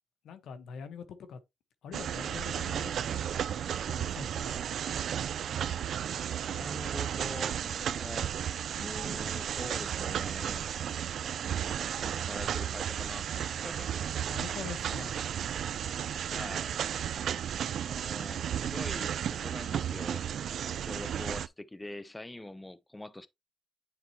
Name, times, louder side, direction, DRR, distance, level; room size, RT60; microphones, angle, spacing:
voice 1, 0.2-1.4 1.8-3.5 3.9-4.6 14.2-15.3, left 6 dB, 80° left, 1.2 m, -44 dB
sound 1, 1.9-21.5, right 9 dB, 70° right, 0.4 m, -34 dB
voice 2, 6.4-8.3 8.8-10.6 11.9-14.2 16.3-16.7 17.8-20.2 20.6-23.3, left 1 dB, 15° left, 0.6 m, -44 dB
9.4 x 4.3 x 2.9 m
cardioid pair, 90°, 0 cm